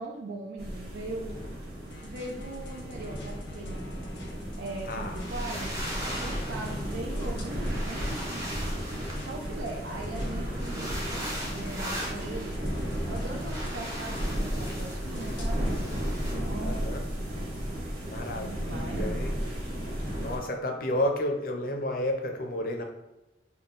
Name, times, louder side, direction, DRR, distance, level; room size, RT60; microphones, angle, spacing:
voice 1, 0.0-1.4 2.0-3.8 4.6-8.5 9.2-11.0 11.5-12.6 13.1-15.7 16.4-16.9 18.3-19.3, right 2 dB, 80° right, 0 dB, 0.4 m, -40 dB
sound 1, 0.6-20.4, equal, 60° right, 1.4 m, -34 dB
sound 2, 1.9-15.9, left 1 dB, 85° left, 0.8 m, -47 dB
sound 3, 5.2-6.8 7.5-9.8 10.5-16.3, equal, 20° right, 0.7 m, -39 dB
voice 2, 16.6-17.0 18.0-19.3 20.2-22.8, left 1 dB, 50° left, 3 dB, 0.5 m, -31 dB
3.6 x 2.2 x 3.8 m, 0.97 s
head